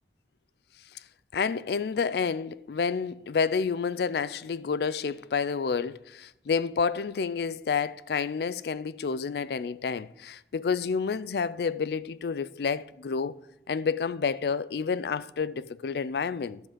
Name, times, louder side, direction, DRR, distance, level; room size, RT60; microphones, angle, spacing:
voice 1, 1.3-13.4 13.7-16.6, left 5 dB, 60° left, 0.4 m, -29 dB
12.0 x 5.0 x 7.3 m
head